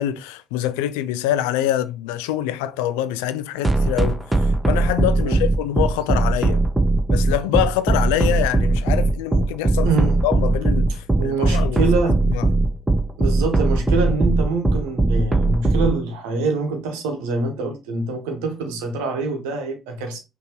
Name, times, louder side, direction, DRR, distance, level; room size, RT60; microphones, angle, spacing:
voice 1, 0.0-6.6 7.1-9.9 10.2-11.9 12.3-12.4, left 12 dB, 75° left, 0.3 m, -25 dB
sound 1, 3.6-15.9, right 2 dB, 20° right, 1.0 m, -18 dB
voice 2, 9.8-10.2 11.2-12.2 13.2-20.2, right 3 dB, 75° right, 1.0 m, -25 dB
5.6 x 2.8 x 2.9 m
hypercardioid pair, 45°, 0 cm